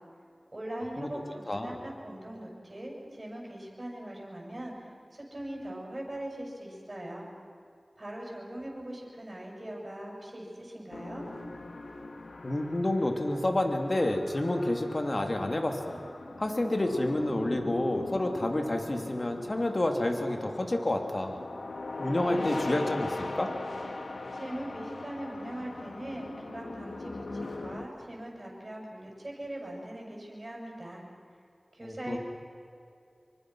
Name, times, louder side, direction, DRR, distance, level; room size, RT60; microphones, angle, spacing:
voice 1, 0.5-7.3 8.0-11.3 24.3-31.0 31.7-32.2, right 1 dB, 40° right, -3 dB, 7.9 m, -41 dB
voice 2, 1.5-1.8 12.4-16.0 16.4-21.4 22.0-23.5 31.8-32.2, left 1 dB, 45° left, 4 dB, 2.8 m, -29 dB
sound 1, 10.9-27.9, left 2 dB, 85° left, 1.8 m, -40 dB
27.0 x 24.5 x 6.4 m, 2.5 s
wide cardioid pair, 40°, 0 cm